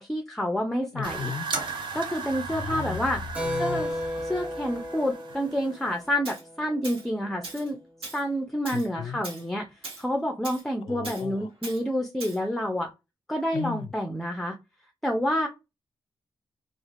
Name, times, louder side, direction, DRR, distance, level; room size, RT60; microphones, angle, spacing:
voice 1, 0.0-1.3 1.9-3.2 3.6-3.9 4.2-7.8 8.1-9.7 10.0-12.9 13.3-14.6 15.0-15.5, equal, 5° left, 0.5 m, -28 dB
voice 2, 0.9-1.4 2.5-3.9 8.7-9.2 10.8-11.5 13.5-13.9, left 8 dB, 65° left, 0.4 m, -36 dB
sound 1, 1.0-6.1, right 3 dB, 55° right, 0.7 m, -36 dB
Keyboard (musical), 3.3-7.4, left 1 dB, 15° right, 1.1 m, -34 dB
Tools, 6.2-6.4 6.8-7.1 7.4-7.7 8.0-8.2 8.7-8.9 9.2-9.4 9.8-10.0 10.4-10.6 11.0-11.2 11.6-11.8 12.2-12.4, right 3 dB, 75° right, 1.4 m, -39 dB
3.1 x 2.4 x 2.5 m
cardioid pair, 95°, 9 cm